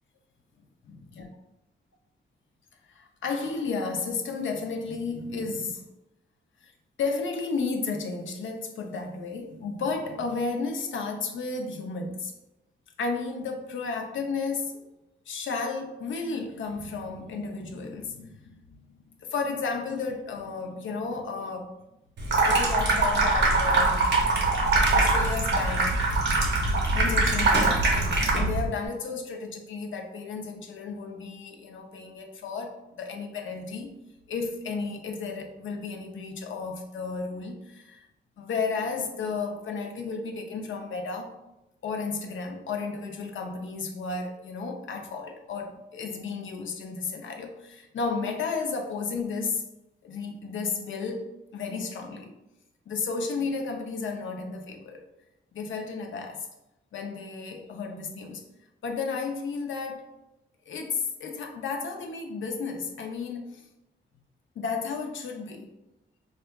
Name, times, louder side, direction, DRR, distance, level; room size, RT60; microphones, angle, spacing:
voice 1, 0.9-1.3 2.9-5.9 6.6-6.7 7.0-12.3 13.0-14.8 15.3-21.8 22.4-24.1 24.8-26.0 26.6-33.9 34.3-38.1 38.4-41.3 41.8-49.6 50.0-52.3 52.9-55.0 55.5-56.5 56.9-58.4 58.8-60.1 60.7-63.7 64.6-65.7, left 4 dB, 70° left, 3 dB, 0.5 m, -33 dB
Water tap faucet / Sink (filling or washing), 22.2-28.7, right 2 dB, 60° right, 0.7 m, -23 dB
4.5 x 2.3 x 2.2 m, 0.93 s
wide cardioid pair, 150°, 20 cm